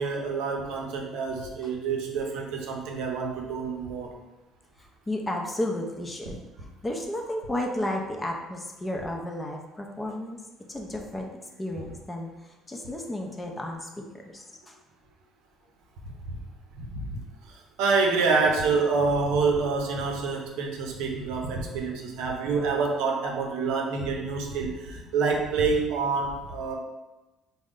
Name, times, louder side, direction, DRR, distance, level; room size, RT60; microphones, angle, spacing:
voice 1, 0.0-4.1 16.3-16.4 16.7-17.2 17.8-26.8, right 4 dB, 85° right, 1 dB, 0.6 m, -27 dB
voice 2, 4.8-10.4 10.7-11.3 11.6-14.8 21.9-22.0, left 1 dB, 15° left, 1 dB, 0.5 m, -33 dB
3.7 x 2.1 x 3.6 m, 1.1 s
cardioid pair, 120°, 0 cm